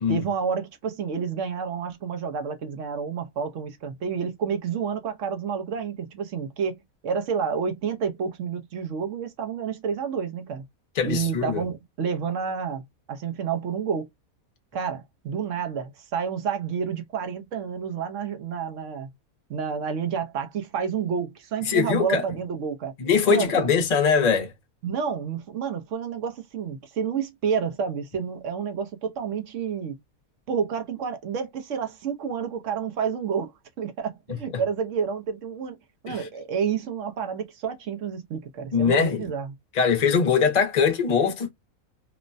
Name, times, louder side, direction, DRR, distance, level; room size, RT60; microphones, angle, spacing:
voice 1, 0.1-10.6 11.0-14.1 14.7-19.1 19.5-22.9 23.3-23.7 24.8-30.0 30.5-33.5 33.8-35.8 36.0-39.5, right 6 dB, 65° right, 1.0 m, -29 dB
voice 2, 11.0-11.6 21.7-22.2 23.0-24.5 36.1-36.2 38.7-39.2 39.7-41.5, left 6 dB, 40° left, 0.6 m, -22 dB
3.1 x 2.1 x 2.4 m
omnidirectional pair, 1.5 m